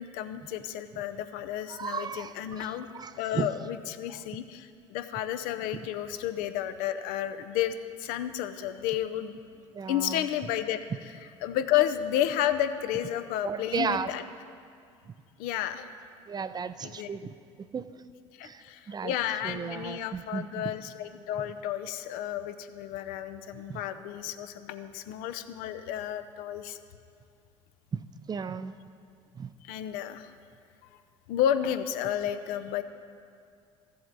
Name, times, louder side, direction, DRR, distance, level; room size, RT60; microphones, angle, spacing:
voice 1, 0.0-2.9 3.2-9.4 9.9-10.8 11.4-14.2 15.4-15.9 16.8-17.3 18.4-26.8 29.6-30.3 31.3-32.8, left 11 dB, 65° left, 11 dB, 0.6 m, -31 dB
voice 2, 1.7-3.5 5.7-5.8 9.7-10.3 13.4-14.1 16.3-17.3 17.7-17.9 18.4-19.1 19.4-20.6 23.5-23.8 27.9-28.0 28.3-28.8 29.3-29.5, right 6 dB, 25° right, 13 dB, 0.4 m, -35 dB
14.0 x 7.7 x 4.0 m, 2.4 s
hypercardioid pair, 65°, 16 cm